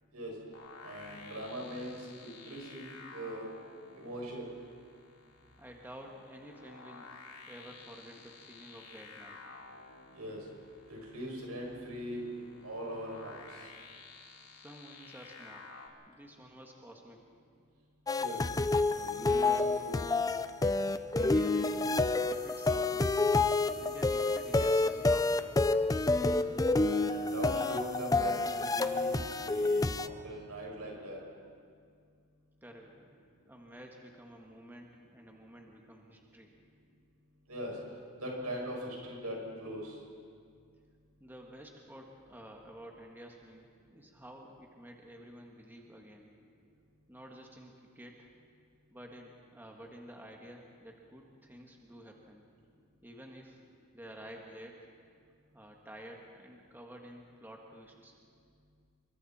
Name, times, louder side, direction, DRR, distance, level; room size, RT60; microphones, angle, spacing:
sound 1, 0.5-15.9, left 4 dB, 90° left, 2.9 m, -53 dB
voice 1, 0.8-3.4 3.9-4.5 10.1-10.5 10.9-13.7 18.2-18.5 18.9-20.0 26.2-26.4 26.9-29.2 29.4-31.2 37.5-37.8 38.2-40.0, equal, 80° right, -2 dB, 6.4 m, -41 dB
voice 2, 5.6-7.1 7.4-9.4 14.5-15.7 16.1-17.2 21.1-23.4 23.8-25.5 32.6-33.2 33.4-36.5 41.2-46.3 47.1-48.3 48.9-52.5 53.0-53.6 53.9-54.9 55.5-58.2, equal, 10° right, 0 dB, 1.7 m, -51 dB
sound 2, 18.1-30.1, left 3 dB, 15° left, 0.5 m, -29 dB
29.0 x 23.5 x 4.3 m, 2.2 s
head